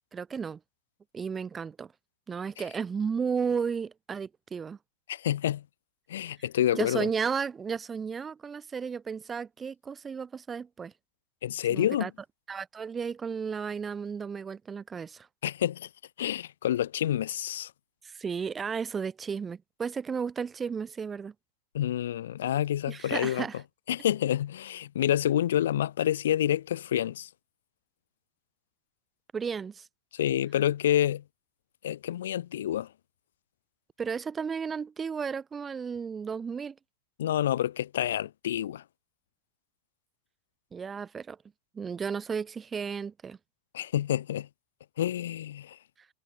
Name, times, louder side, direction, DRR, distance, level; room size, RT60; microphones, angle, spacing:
voice 1, 0.1-0.6 1.1-1.9 2.3-4.8 6.7-10.9 11.7-12.1 12.5-15.3 18.0-21.3 22.9-23.6 29.3-29.9 34.0-36.8 40.7-41.4 41.7-43.4, right 6 dB, 20° right, 0.4 m, -33 dB
voice 2, 5.1-5.6 6.1-7.1 11.4-12.1 15.4-15.9 16.2-17.7 21.7-23.5 23.9-27.3 30.1-31.2 31.8-32.9 37.2-38.8 43.7-44.5 45.0-45.8, left 11 dB, 60° left, 0.5 m, -28 dB
figure-of-eight pair, 90°, 0 cm